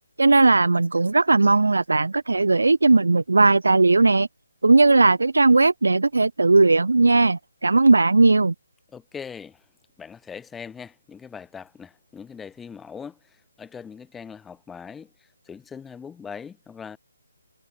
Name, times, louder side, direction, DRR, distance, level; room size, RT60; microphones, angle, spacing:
voice 1, 0.2-4.3 4.6-8.5, right 3 dB, 70° right, 0.9 m, -17 dB
voice 2, 8.9-9.7 10.0-17.0, left 6 dB, 5° left, 3.9 m, -41 dB
figure-of-eight pair, 145°, 0 cm